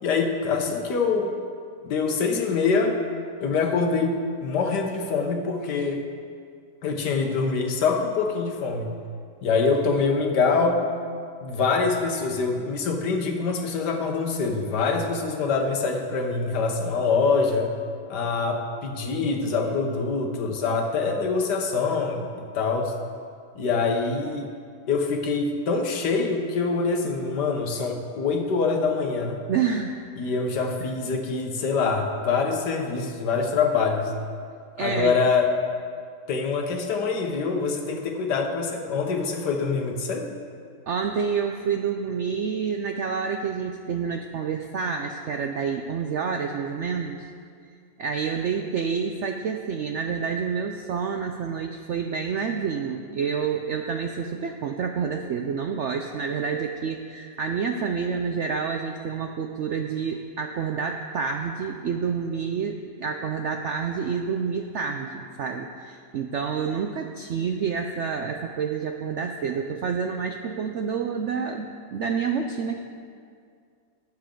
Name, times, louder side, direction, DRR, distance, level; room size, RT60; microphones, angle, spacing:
voice 1, 0.0-1.3 1.8-3.0 3.4-6.0 6.8-8.9 9.4-10.8 11.4-17.7 18.1-22.9 23.5-24.5 24.9-29.4 30.2-34.1 34.8-35.5 36.3-40.3, left 4 dB, 75° left, 3 dB, 1.7 m, -25 dB
voice 2, 29.5-30.0 30.8-30.9 34.8-35.2 40.9-47.3 48.0-72.8, right 6 dB, 75° right, 5 dB, 0.6 m, -28 dB
18.5 x 7.5 x 3.8 m, 2.2 s
omnidirectional pair, 1.8 m